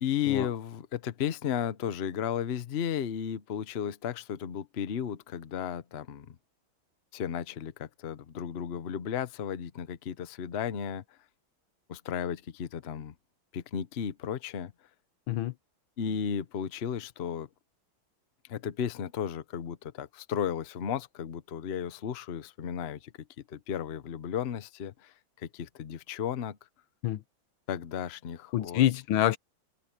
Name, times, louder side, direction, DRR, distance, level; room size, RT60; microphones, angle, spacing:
voice 1, 0.0-6.4 7.1-11.0 11.9-13.1 13.5-14.7 16.0-17.5 18.5-23.1 23.5-26.6 27.7-28.8, left 8 dB, 50° left, 0.8 m, -34 dB
voice 2, 28.5-29.4, left 12 dB, 85° left, 1.6 m, -26 dB
omnidirectional pair, 2.2 m